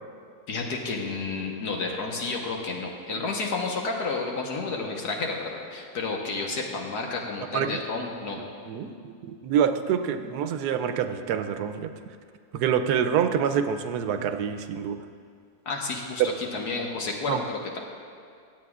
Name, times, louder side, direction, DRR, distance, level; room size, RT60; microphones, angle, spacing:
voice 1, 0.5-8.4 15.7-17.8, left 3 dB, 80° left, -1 dB, 1.7 m, -31 dB
voice 2, 8.7-11.9 12.5-15.0 16.2-16.3 17.3-17.4, right 8 dB, 85° right, 9 dB, 1.2 m, -26 dB
23.5 x 8.5 x 2.4 m, 2.3 s
omnidirectional pair, 1.7 m